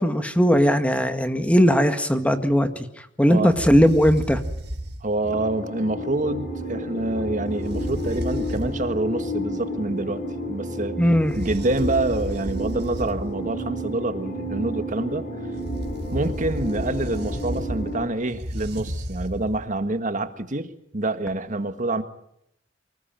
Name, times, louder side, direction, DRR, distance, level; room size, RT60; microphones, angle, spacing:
voice 1, 0.0-2.7 3.2-4.4 11.0-11.3, equal, 5° left, 8 dB, 1.8 m, -18 dB
sound 1, 3.5-5.2 7.6-8.9 11.2-13.4 15.6-19.7, equal, 60° right, 4.1 m, -32 dB
voice 2, 5.0-10.2 10.5-11.0 11.3-15.2 16.1-22.0, right 2 dB, 45° right, 9 dB, 1.7 m, -27 dB
sound 2, 5.2-18.1, equal, 50° left, 6.1 m, -31 dB
24.5 x 20.0 x 9.1 m, 0.76 s
head